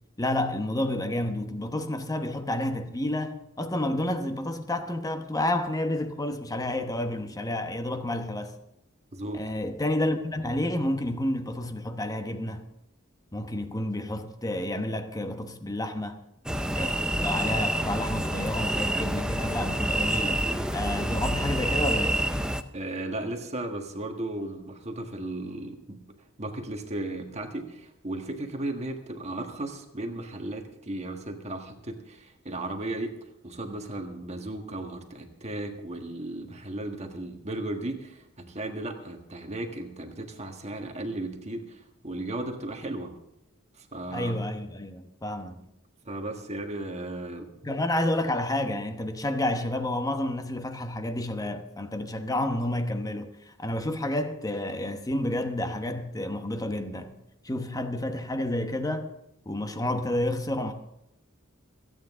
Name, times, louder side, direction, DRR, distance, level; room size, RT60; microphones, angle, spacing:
voice 1, 0.2-8.5 9.3-12.7 13.3-16.2 16.7-20.4 20.7-22.2 44.1-45.7 47.6-57.2 57.4-59.1 59.4-60.7, left 1 dB, 15° left, 1.0 m, -30 dB
voice 2, 9.1-9.4 22.7-26.0 26.4-43.1 43.8-44.4 46.0-47.5, right 2 dB, 30° right, 1.6 m, -35 dB
sound 1, 16.5-22.6, right 1 dB, 5° right, 0.5 m, -28 dB
27.5 x 9.3 x 3.7 m
head